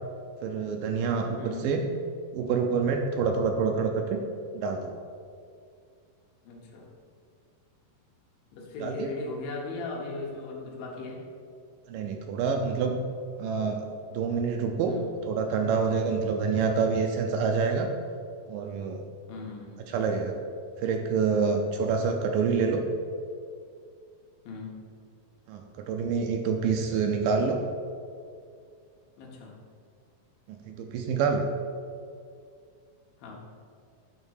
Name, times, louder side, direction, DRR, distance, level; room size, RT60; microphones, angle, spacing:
voice 1, 0.4-1.8 2.3-4.2 4.5-4.9 8.8-9.1 11.9-13.0 13.4-14.9 15.3-17.9 18.5-19.0 19.9-20.3 20.8-22.8 25.5-27.6 30.5-31.5, right 5 dB, 80° right, 3 dB, 2.0 m, -27 dB
voice 2, 1.4-1.7 6.4-6.9 8.5-11.2 14.9-15.1 16.7-16.8 19.3-19.9 24.5-24.8 29.2-29.6 33.2-33.3, left 3 dB, 80° left, -1 dB, 3.0 m, -38 dB
9.0 x 3.7 x 6.3 m, 2.3 s
omnidirectional pair, 4.2 m